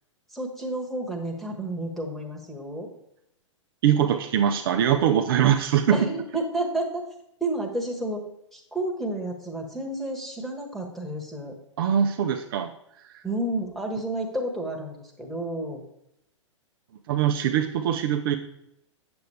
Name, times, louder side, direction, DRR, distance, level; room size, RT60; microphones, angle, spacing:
voice 1, 0.3-2.9 5.9-7.0 7.4-8.2 8.5-11.5 13.2-15.8, right 1 dB, ahead, 2 dB, 1.4 m, -31 dB
voice 2, 3.8-6.0 11.8-12.7 13.1-13.2 17.1-18.4, right 9 dB, 45° right, 5 dB, 0.6 m, -22 dB
8.9 x 7.0 x 3.3 m, 0.80 s
figure-of-eight pair, 110°, 16 cm